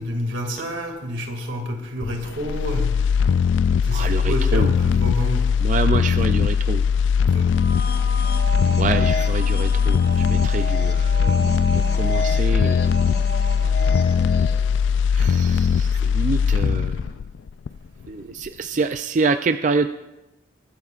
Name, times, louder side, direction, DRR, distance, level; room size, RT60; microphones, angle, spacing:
voice 1, 0.0-3.1 3.8-5.5 7.3-7.5 8.1-8.2, equal, 85° right, 3 dB, 2.2 m, -29 dB
sound 1, 2.0-18.1 18.5-18.6, left 6 dB, 90° left, 0.3 m, -20 dB
voice 2, 3.9-4.7 5.6-6.8 8.8-10.0 10.3-11.4 11.9-12.8 15.1-17.0 18.1-19.9, right 4 dB, 40° right, 9 dB, 0.4 m, -26 dB
sound 2, 7.4-14.8, left 1 dB, 55° left, 0.9 m, -31 dB
22.0 x 13.0 x 2.4 m, 0.99 s
head